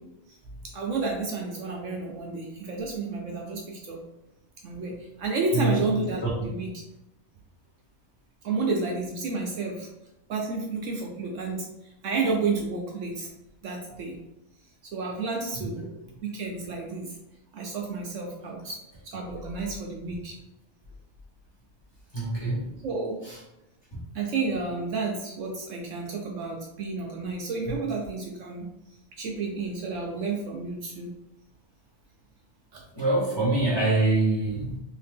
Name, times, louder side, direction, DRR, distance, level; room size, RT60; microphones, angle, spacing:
voice 1, 0.6-4.0 4.6-6.7 8.4-9.9 10.3-11.7 12.0-13.3 13.6-14.1 14.9-15.8 16.2-17.1 17.5-18.8 19.0-20.4 22.8-23.2 24.1-28.7 29.2-31.1 32.7-32.8, right 4 dB, 65° right, -1 dB, 0.9 m, -31 dB
voice 2, 5.5-6.3 22.1-22.8 23.2-23.4 23.9-24.0 27.7-27.8 32.9-34.8, right 2 dB, 20° left, -6 dB, 1.1 m, -25 dB
3.3 x 2.8 x 3.5 m, 0.91 s
omnidirectional pair, 1.5 m